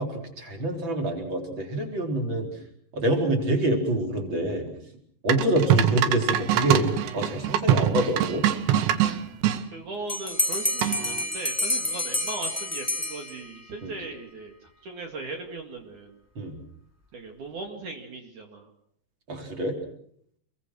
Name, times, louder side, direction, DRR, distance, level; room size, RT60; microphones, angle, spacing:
voice 1, 0.0-2.6 2.9-4.6 5.2-6.9 7.1-8.4 13.8-13.9 16.3-16.6 19.3-19.8, right 1 dB, 30° right, 2 dB, 4.7 m, -26 dB
sound 1, 5.3-9.6 10.8-11.2, right 10 dB, 80° right, 3.5 m, -23 dB
voice 2, 9.7-14.5 14.8-16.1 17.1-18.7, right 3 dB, 50° right, 2 dB, 3.2 m, -38 dB
Bell, 10.1-13.7, left 1 dB, 15° left, 0.6 m, -29 dB
28.5 x 22.5 x 6.4 m, 0.68 s
omnidirectional pair, 4.9 m